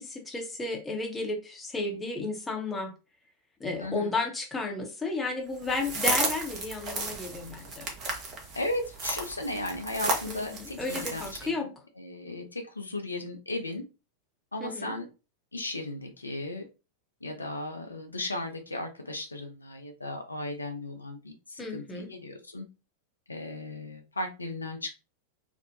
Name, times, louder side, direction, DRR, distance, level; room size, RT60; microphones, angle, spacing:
voice 1, 0.0-2.9 3.6-7.8 10.3-11.7 14.6-14.9 21.6-22.1, left 3 dB, 15° left, 0.7 m, -33 dB
voice 2, 3.8-4.1 8.5-13.8 14.5-15.1 15.5-16.7 17.2-22.7 23.3-24.9, left 2 dB, 80° left, 0.4 m, -36 dB
sound 1, 5.6-11.5, right 3 dB, 30° right, 0.7 m, -33 dB
2.5 x 2.1 x 2.6 m
figure-of-eight pair, 90°, 0 cm